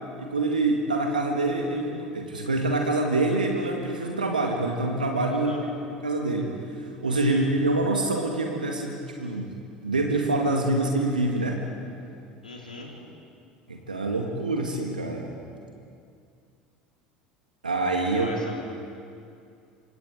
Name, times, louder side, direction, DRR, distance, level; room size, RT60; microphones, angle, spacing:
voice 1, 0.2-5.5 5.8-9.5 9.8-11.6 13.7-15.3 17.6-18.3, right 2 dB, 80° right, 1 dB, 2.1 m, -26 dB
voice 2, 5.3-5.6 7.3-7.5 12.4-12.9 18.1-18.6, left 3 dB, 85° left, -1 dB, 3.8 m, -40 dB
26.5 x 26.0 x 5.0 m, 2.4 s
figure-of-eight pair, 70°, 5 cm